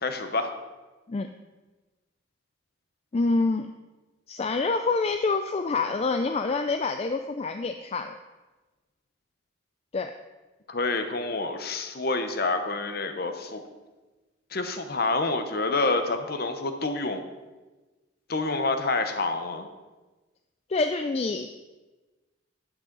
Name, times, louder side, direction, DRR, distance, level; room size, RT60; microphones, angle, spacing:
voice 1, 0.0-0.5 10.7-13.6 14.5-17.2 18.3-19.7, left 3 dB, 50° left, 7 dB, 1.0 m, -28 dB
voice 2, 3.1-3.7 4.3-8.2 9.9-10.1 20.7-21.5, left 3 dB, 30° left, 7 dB, 0.4 m, -26 dB
12.0 x 9.1 x 4.0 m, 1.2 s
head